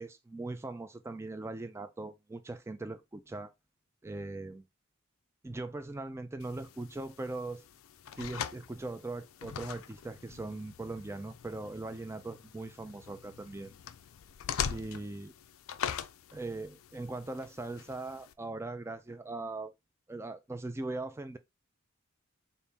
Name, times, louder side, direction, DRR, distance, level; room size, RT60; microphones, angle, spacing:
voice 1, 0.0-3.5 4.0-4.6 5.4-7.6 8.2-13.7 14.7-15.3 16.3-19.7 20.1-21.4, right 2 dB, 10° right, 0.3 m, -40 dB
sound 1, 6.4-18.3, left 8 dB, 70° left, 0.4 m, -42 dB
4.0 x 2.6 x 3.5 m
head